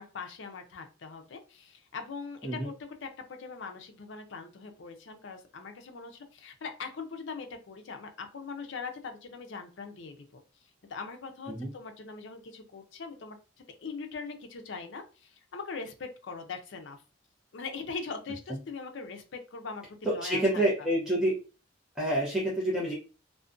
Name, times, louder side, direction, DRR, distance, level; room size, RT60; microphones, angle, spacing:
voice 1, 0.0-2.7 3.0-10.4 10.9-13.4 13.8-17.0 17.5-20.6, left 4 dB, 65° left, 5 dB, 0.5 m, -41 dB
voice 2, 20.1-21.3 22.0-22.9, right 1 dB, 5° right, -5 dB, 0.5 m, -27 dB
2.4 x 2.1 x 2.4 m, 0.34 s
head